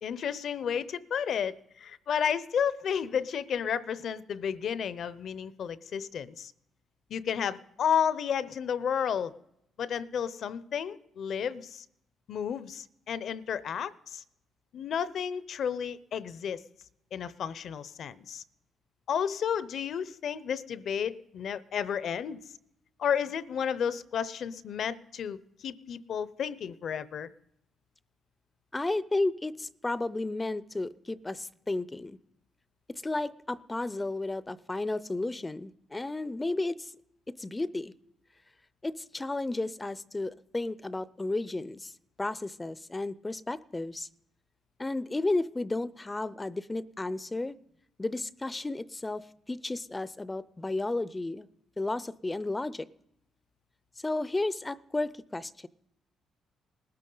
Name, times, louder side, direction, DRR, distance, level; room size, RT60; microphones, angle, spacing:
voice 1, 0.0-6.5 7.1-9.3 9.8-11.8 12.3-14.2 14.7-16.6 17.1-18.4 19.1-22.4 23.0-27.3, left 8 dB, 65° left, 0.6 m, -32 dB
voice 2, 28.7-32.2 32.9-36.9 37.3-37.9 38.8-41.9 42.2-44.1 44.8-47.6 48.0-51.5 51.8-52.9 54.0-55.7, left 2 dB, 20° left, 0.4 m, -33 dB
20.0 x 13.0 x 3.9 m
cardioid pair, 90°, 0 cm